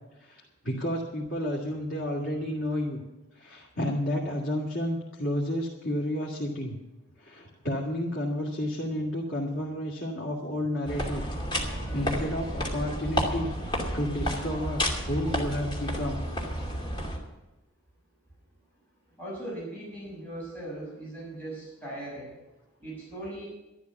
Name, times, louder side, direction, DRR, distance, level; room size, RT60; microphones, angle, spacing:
voice 1, 0.2-3.0 3.3-6.8 7.2-11.2 11.6-13.6 13.9-16.2, left 1 dB, 85° left, -3 dB, 2.3 m, -31 dB
sound 1, 10.9-17.2, equal, 25° left, 2.6 m, -31 dB
voice 2, 19.2-22.3 22.8-23.5, right 1 dB, 10° left, -7 dB, 6.2 m, -39 dB
12.5 x 12.0 x 6.0 m, 1.0 s
head